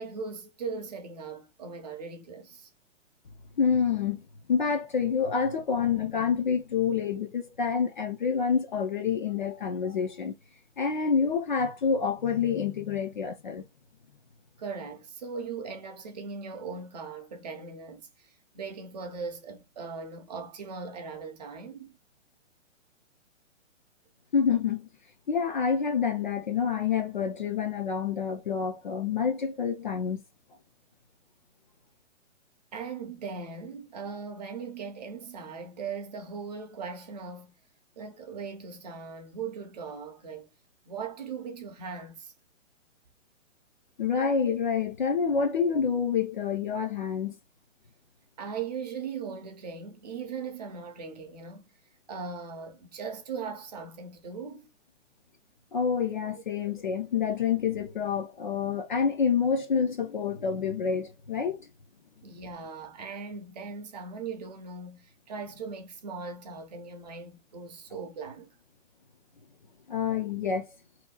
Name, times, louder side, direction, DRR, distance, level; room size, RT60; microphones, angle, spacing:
voice 1, 0.0-2.7 14.6-22.0 32.7-37.6 38.0-40.5 40.9-42.3 48.4-51.6 52.1-54.7 62.2-68.5, right 5 dB, 35° right, 0.6 m, -39 dB
voice 2, 3.6-4.2 4.5-10.4 10.8-13.6 24.3-24.9 25.3-30.2 44.0-47.4 55.7-61.7 69.9-70.7, left 6 dB, 40° left, 0.4 m, -27 dB
2.8 x 2.2 x 3.7 m
hypercardioid pair, 160°, 38 cm